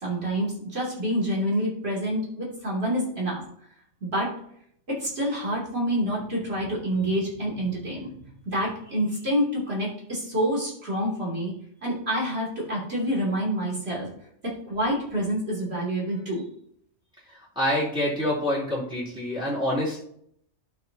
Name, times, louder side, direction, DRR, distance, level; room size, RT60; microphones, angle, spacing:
voice 1, 0.0-3.4 4.0-4.3 4.9-8.1 8.5-11.5 11.8-14.1 14.7-16.4, equal, 50° right, -5 dB, 3.1 m, -27 dB
voice 2, 17.6-20.0, left 1 dB, 5° right, -8 dB, 2.7 m, -26 dB
12.0 x 6.0 x 2.8 m, 0.69 s
omnidirectional pair, 1.4 m